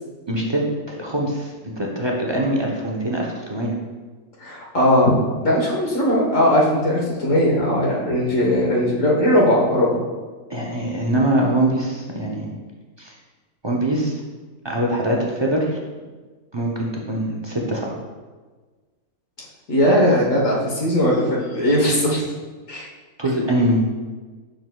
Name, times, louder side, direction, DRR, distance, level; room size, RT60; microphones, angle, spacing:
voice 1, 0.3-3.8 10.5-12.5 13.0-13.1 13.6-14.2 14.6-15.8 16.5-18.0 23.2-23.8, right 1 dB, 40° right, -2 dB, 0.4 m, -23 dB
voice 2, 4.4-5.1 5.4-10.0 19.7-22.2 22.7-22.9, equal, 60° left, -4 dB, 1.4 m, -19 dB
6.8 x 6.6 x 2.2 m, 1.4 s
omnidirectional pair, 1.6 m